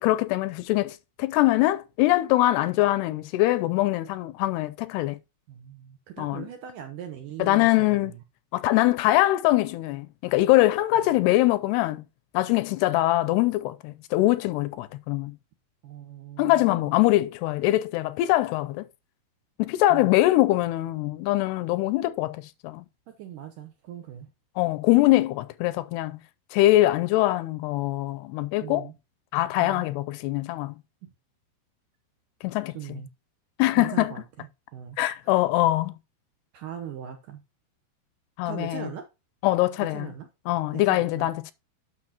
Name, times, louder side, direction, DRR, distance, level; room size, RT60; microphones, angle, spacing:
voice 1, 0.0-5.2 6.2-6.4 7.4-8.1 8.5-12.0 12.3-15.3 16.4-18.9 19.6-22.9 24.6-26.2 26.5-28.9 29.3-30.7 32.4-32.7 33.6-34.1 35.0-35.9 38.4-38.9 39.4-40.1 40.5-41.5, left 17 dB, 85° left, 2.5 m, -23 dB
voice 2, 5.5-8.2 15.8-16.9 19.9-20.2 23.1-24.3 25.1-25.2 28.6-29.0 29.6-29.9 31.0-31.1 32.7-33.1 33.7-35.0 35.2-35.3 36.5-37.4 38.5-39.0 39.9-40.3 40.7-41.3, right 10 dB, 70° right, 2.0 m, -40 dB
9.8 x 6.5 x 2.9 m
omnidirectional pair, 4.8 m